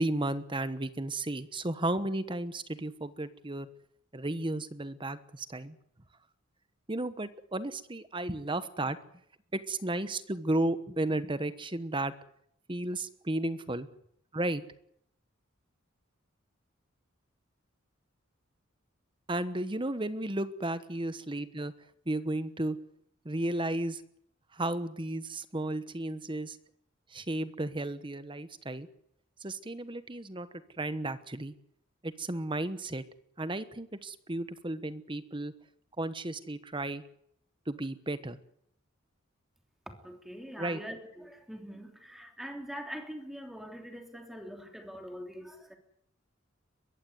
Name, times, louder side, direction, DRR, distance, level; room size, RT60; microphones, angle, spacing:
voice 1, 0.0-3.7 4.1-5.8 6.9-9.0 9.7-12.1 12.7-13.9 14.3-14.6 19.3-21.7 22.1-22.8 23.2-24.0 24.5-26.6 27.1-28.9 29.4-30.5 30.8-31.5 32.0-33.0 33.4-35.5 36.0-37.0 37.7-38.4 40.6-40.8, right 1 dB, 25° right, 13 dB, 1.2 m, -33 dB
voice 2, 40.0-45.8, equal, ahead, 4 dB, 3.1 m, -43 dB
22.5 x 15.0 x 9.6 m, 0.71 s
head